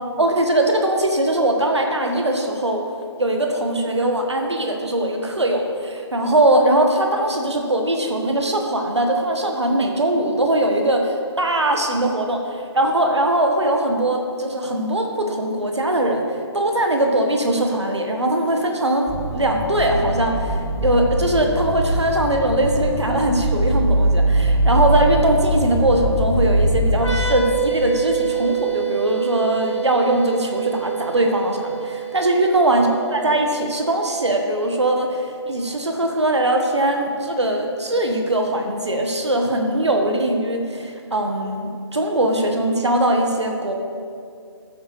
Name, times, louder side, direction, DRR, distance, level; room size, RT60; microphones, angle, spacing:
voice 1, 0.2-2.8 3.2-16.2 16.5-43.7, right 1 dB, 70° right, 3 dB, 1.5 m, -21 dB
sound 1, 19.1-27.2, right 1 dB, ahead, 0.9 m, -21 dB
sound 2, 27.0-34.5, right 10 dB, 75° left, 1.5 m, -28 dB
13.0 x 8.5 x 3.3 m, 2.3 s
figure-of-eight pair, 150°, 15 cm